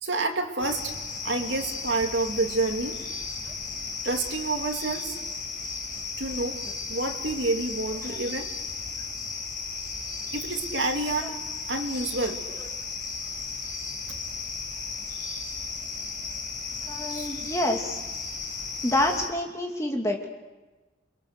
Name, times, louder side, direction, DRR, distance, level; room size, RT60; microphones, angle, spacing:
voice 1, 0.0-0.9 1.2-3.0 4.0-5.2 6.2-6.6 6.9-8.5 10.3-11.3 11.7-12.4 14.1-14.2 17.1-17.3, right 2 dB, 75° right, 3 dB, 2.7 m, -28 dB
sound 1, 0.6-19.3, left 4 dB, 45° left, 5.8 m, -35 dB
voice 2, 16.8-18.0 18.8-20.3, left 1 dB, 15° left, 1 dB, 2.5 m, -28 dB
28.5 x 23.0 x 6.7 m, 1.2 s
head